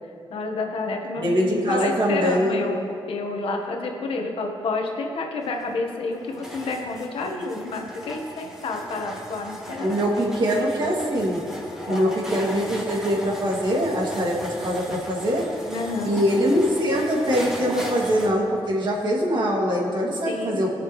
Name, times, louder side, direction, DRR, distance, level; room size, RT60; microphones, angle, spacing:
voice 1, 0.3-10.0 11.9-12.1 15.7-16.2 20.2-20.7, left 3 dB, 80° left, 2 dB, 1.3 m, -30 dB
voice 2, 1.2-2.6 9.8-11.4 11.9-15.4 16.0-20.7, equal, 55° right, -3 dB, 2.4 m, -23 dB
sound 1, 5.4-18.3, equal, 5° right, 2.2 m, -37 dB
18.0 x 6.8 x 3.2 m, 2.7 s
cardioid pair, 85°, 9 cm